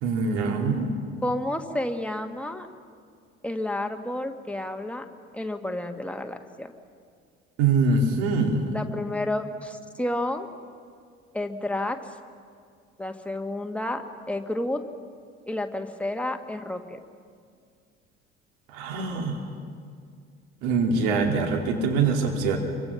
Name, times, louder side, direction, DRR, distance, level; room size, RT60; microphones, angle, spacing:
voice 1, 0.0-0.9 7.6-8.8 18.7-19.4 20.6-22.6, right 4 dB, 65° right, 3 dB, 2.9 m, -24 dB
voice 2, 1.2-2.7 3.4-5.1 5.3-6.7 8.7-10.5 11.3-12.0 13.0-14.8 15.5-17.0, left 1 dB, 5° left, 5 dB, 1.8 m, -30 dB
27.0 x 24.0 x 5.9 m, 2.1 s
figure-of-eight pair, 55°, 35 cm